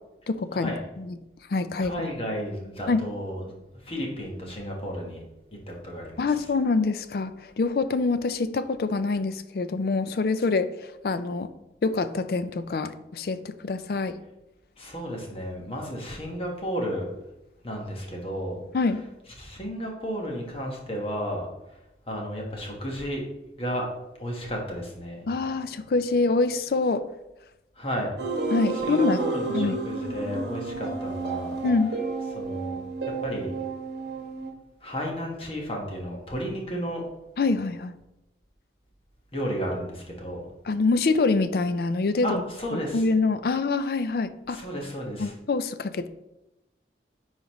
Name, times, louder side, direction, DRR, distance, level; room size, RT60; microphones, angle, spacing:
voice 1, 0.3-1.1 1.5-2.1 2.9-3.0 6.2-11.5 11.8-14.2 18.7-19.0 25.3-27.0 28.5-29.2 29.5-29.8 31.6-31.9 37.4-37.9 40.7-42.4 42.7-44.6 45.2-46.1, left 3 dB, 55° left, 13 dB, 0.4 m, -25 dB
voice 2, 1.8-3.5 3.8-5.2 5.7-6.2 14.8-17.0 17.6-18.6 19.4-21.5 22.1-23.2 23.6-23.8 24.2-25.2 27.8-28.1 28.8-31.6 32.3-32.8 33.2-33.5 34.8-37.1 39.3-40.5 42.2-43.0 44.5-45.3, equal, 35° left, -1 dB, 1.4 m, -33 dB
sound 1, 28.2-34.5, right 3 dB, 70° right, 1.2 m, -31 dB
9.9 x 4.0 x 3.0 m, 0.93 s
head